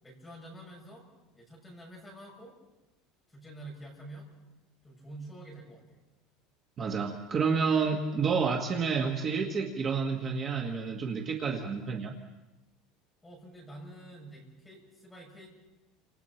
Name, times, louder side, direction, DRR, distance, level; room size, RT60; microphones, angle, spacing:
voice 1, 0.0-1.1 1.3-2.6 3.3-4.3 4.8-6.0 13.2-15.5, right 1 dB, 5° left, -3 dB, 7.3 m, -48 dB
voice 2, 6.8-12.1, right 5 dB, 25° right, 1 dB, 1.5 m, -29 dB
30.0 x 27.0 x 4.5 m, 1.0 s
cardioid pair, 175°, 0 cm